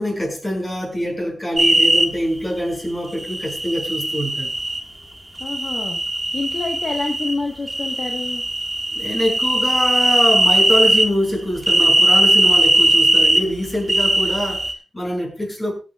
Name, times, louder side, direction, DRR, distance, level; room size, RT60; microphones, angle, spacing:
voice 1, 0.0-4.5 8.9-15.7, equal, 20° left, 5.7 m, -24 dB
sound 1, 1.6-2.0 3.2-4.8 5.4-7.3 7.7-11.1 11.6-13.4 13.9-14.7, right 1 dB, 10° right, 1.8 m, -18 dB
voice 2, 5.4-6.0 6.3-8.4, left 3 dB, 45° left, 1.3 m, -27 dB
24.0 x 8.8 x 2.4 m
wide cardioid pair, 160°, 0 cm